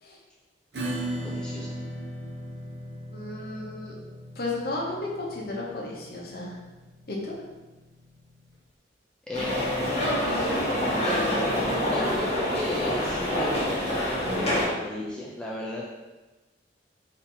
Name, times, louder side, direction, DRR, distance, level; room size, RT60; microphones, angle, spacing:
Acoustic guitar / Strum, 0.7-7.9, right 1 dB, 65° right, 0.8 m, -37 dB
voice 1, 1.2-1.8 9.3-10.3 10.9-11.4 11.9-15.9, left 1 dB, 5° left, -4 dB, 0.4 m, -35 dB
voice 2, 3.1-4.0 4.3-6.6 7.1-7.3, left 2 dB, 55° left, -3 dB, 0.9 m, -33 dB
sound 1, 9.3-14.7, equal, 35° left, 1.2 m, -26 dB
4.2 x 2.7 x 4.2 m, 1.2 s
head